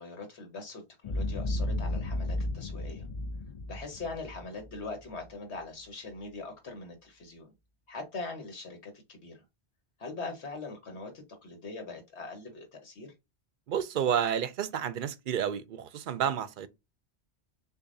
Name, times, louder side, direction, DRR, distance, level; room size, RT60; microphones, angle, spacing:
voice 1, 0.0-3.0 3.6-7.5 7.9-9.4 10.0-11.1 11.4-13.1, left 3 dB, 80° left, 1.6 m, -41 dB
Boom, 1.0-5.3, left 1 dB, 45° left, 0.5 m, -34 dB
voice 2, 13.7-16.7, right 9 dB, 60° right, 0.6 m, -30 dB
6.7 x 2.5 x 2.6 m
omnidirectional pair, 1.1 m